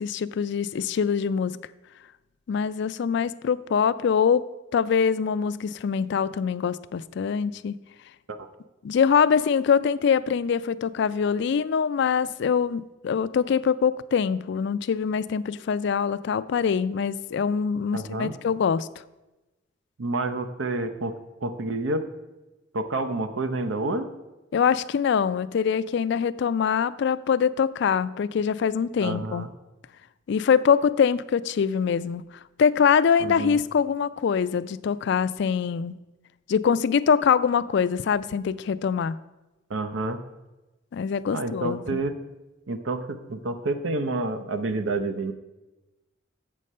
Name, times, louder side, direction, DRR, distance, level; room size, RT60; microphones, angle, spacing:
voice 1, 0.0-1.6 2.5-4.4 4.7-7.8 8.8-18.9 24.5-29.5 30.3-32.2 32.6-36.0 36.5-39.1 40.9-42.0, left 6 dB, 60° left, 16 dB, 0.3 m, -24 dB
voice 2, 17.9-18.3 20.0-21.2 21.4-22.1 22.7-24.1 29.0-29.5 33.2-33.6 39.7-40.2 41.3-42.2 42.7-45.3, right 2 dB, 80° right, 9 dB, 0.7 m, -29 dB
7.4 x 6.5 x 5.4 m, 1.0 s
head